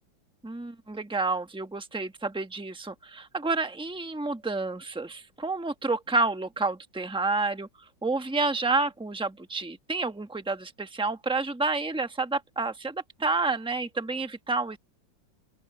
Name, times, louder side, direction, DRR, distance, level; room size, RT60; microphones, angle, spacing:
voice 1, 0.4-7.7 8.0-14.8, right 3 dB, 5° right, 0.9 m, -29 dB
open air
omnidirectional pair, 2.0 m